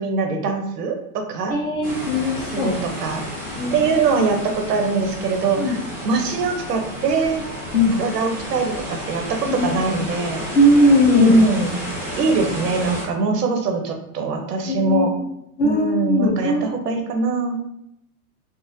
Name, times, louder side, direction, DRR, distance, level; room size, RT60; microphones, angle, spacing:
voice 1, 0.0-1.5 2.5-3.2 3.7-5.8 6.0-7.4 7.9-10.4 11.1-11.8 12.2-15.1 15.6-17.6, right 4 dB, 90° right, 4 dB, 0.8 m, -22 dB
voice 2, 1.5-2.7 3.6-3.9 5.5-5.8 7.7-7.9 9.5-9.7 10.5-11.3 14.7-15.2 15.6-16.7, left 1 dB, 35° left, -2 dB, 0.9 m, -18 dB
sound 1, 1.8-13.0, equal, 5° right, 0.6 m, -31 dB
3.6 x 2.1 x 2.6 m, 0.79 s
supercardioid pair, 150°, 46 cm